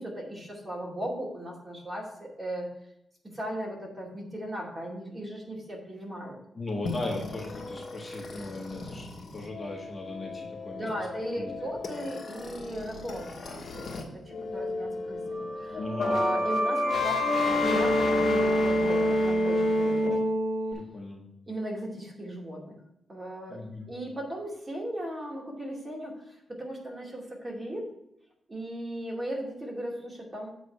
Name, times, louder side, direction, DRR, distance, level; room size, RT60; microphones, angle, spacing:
voice 1, 0.0-2.7 3.2-6.4 10.7-20.2 21.5-22.8 23.1-23.6 23.9-27.9 28.5-30.5, right 1 dB, 20° right, -3 dB, 2.4 m, -37 dB
voice 2, 6.5-10.9 11.4-11.5 11.8-12.1 15.8-16.2 20.7-21.2 23.5-23.9, left 2 dB, 25° left, -2 dB, 1.5 m, -38 dB
sound 1, 6.8-14.0 14.3-20.7, left 1 dB, 55° left, 1.5 m, -29 dB
8.4 x 4.0 x 6.4 m, 0.79 s
wide cardioid pair, 135°, 0 cm